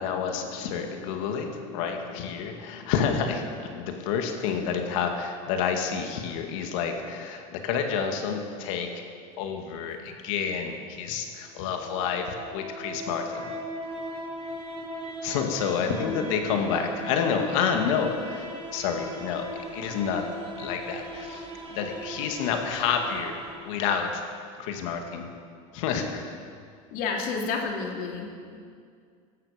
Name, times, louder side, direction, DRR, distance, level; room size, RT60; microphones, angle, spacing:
voice 1, 0.0-9.0 9.4-13.4 15.2-20.3 20.6-23.4 23.7-24.2 24.6-25.3 25.7-26.3, left 6 dB, 75° left, 4 dB, 2.2 m, -29 dB
voice 2, 4.4-4.8 15.8-16.8 26.9-28.6, left 4 dB, 60° left, 0 dB, 3.1 m, -32 dB
sound 1, 11.3-24.3, right 1 dB, 35° right, 3.4 m, -39 dB
18.0 x 13.0 x 5.2 m, 2.2 s
supercardioid pair, 100°, 17 cm